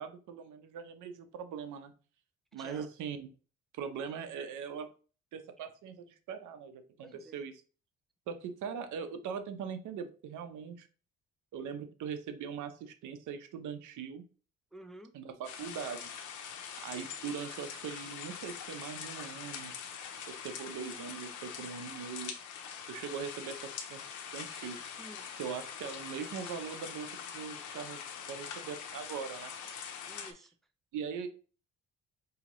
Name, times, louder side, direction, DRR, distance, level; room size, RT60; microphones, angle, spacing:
voice 1, 0.0-1.9 2.5-3.3 3.7-4.9 5.3-7.5 8.3-10.9 11.5-14.2 15.1-16.1 16.8-19.7 20.3-22.3 22.9-24.8 25.4-28.0 28.3-29.5 30.9-31.3, right 7 dB, 80° right, 0.7 m, -41 dB
voice 2, 2.5-2.9 7.0-7.5 14.7-15.2 25.0-25.3 30.1-30.5, right 1 dB, ahead, 0.4 m, -52 dB
sound 1, 15.4-30.3, left 7 dB, 80° left, 0.7 m, -43 dB
4.9 x 2.8 x 3.0 m
cardioid pair, 90°, 30 cm